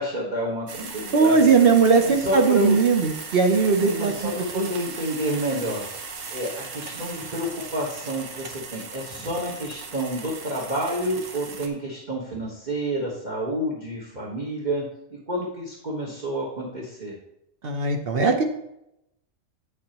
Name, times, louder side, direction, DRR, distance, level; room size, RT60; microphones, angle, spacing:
voice 1, 0.0-1.5 2.0-2.8 3.8-17.1, equal, 35° right, -3 dB, 1.5 m, -29 dB
sound 1, 0.7-11.7, right 4 dB, 85° right, 1.4 m, -38 dB
voice 2, 1.1-4.7 17.6-18.4, right 5 dB, 55° right, 4 dB, 1.0 m, -19 dB
8.5 x 8.3 x 2.9 m, 0.82 s
omnidirectional pair, 1.3 m